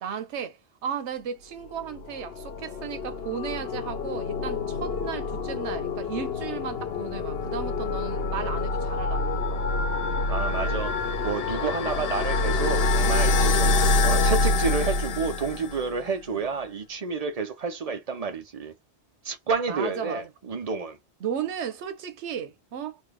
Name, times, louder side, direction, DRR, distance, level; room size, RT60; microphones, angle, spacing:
voice 1, 0.0-9.6 10.5-10.6 16.3-16.4 19.7-20.3 21.2-23.0, right 8 dB, 85° right, 1.0 m, -35 dB
sound 1, 1.8-15.9, left 2 dB, 65° left, 0.9 m, -26 dB
voice 2, 10.3-11.0 11.2-18.7 19.2-21.0, right 5 dB, 40° right, 0.6 m, -30 dB
3.1 x 2.3 x 3.1 m
omnidirectional pair, 1.1 m